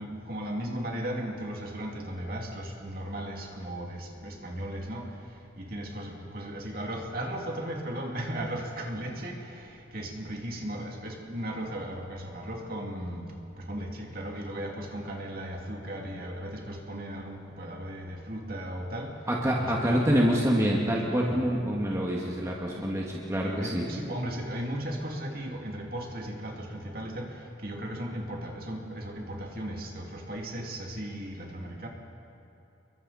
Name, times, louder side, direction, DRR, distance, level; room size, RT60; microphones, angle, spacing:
voice 1, 0.0-5.1 5.6-13.2 13.6-19.1 19.6-19.9 21.2-21.4 22.7-22.9 23.4-27.3 27.6-31.9, right 1 dB, 45° right, 0 dB, 2.7 m, -36 dB
voice 2, 19.3-23.0 23.3-23.8, equal, 15° right, -3 dB, 1.9 m, -26 dB
28.5 x 23.0 x 4.2 m, 2.9 s
head